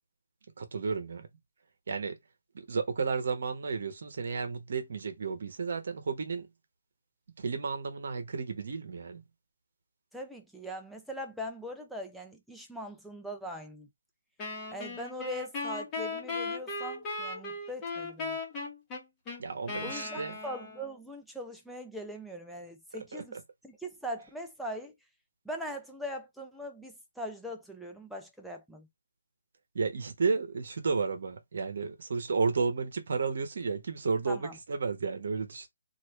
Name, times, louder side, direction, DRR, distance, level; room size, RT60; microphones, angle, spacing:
voice 1, 0.6-1.3 1.9-2.1 2.5-6.5 7.4-9.2 19.4-20.3 23.1-23.2 29.7-35.7, right 4 dB, 60° right, 1.0 m, -32 dB
voice 2, 10.1-13.9 14.7-18.4 19.8-24.9 25.4-28.9 34.3-34.6, equal, ahead, 0.6 m, -41 dB
Wind instrument woodwind instrument, 14.4-21.0, left 3 dB, 20° left, 1.3 m, -37 dB
3.0 x 2.6 x 3.2 m
hypercardioid pair, 150°, 0 cm